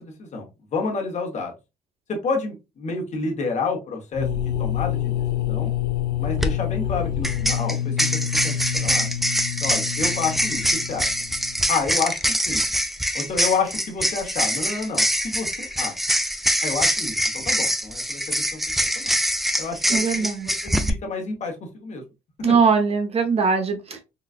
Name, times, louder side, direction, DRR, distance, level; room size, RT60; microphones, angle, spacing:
voice 1, 0.0-1.5 2.1-5.7 6.2-9.1 9.6-11.1 11.7-12.2 12.4-12.6 13.1-15.9 16.6-18.6 19.0-19.2 19.6-22.0 22.5-22.6, left 4 dB, 45° left, 1.1 m, -29 dB
sound 1, 4.1-11.9, left 10 dB, 75° left, 0.5 m, -27 dB
sound 2, 6.2-6.5 7.2-20.9, equal, ahead, 0.3 m, -24 dB
voice 2, 19.9-20.5 22.4-24.0, right 5 dB, 35° right, 0.9 m, -21 dB
3.9 x 2.3 x 2.4 m
cardioid pair, 110°, 17 cm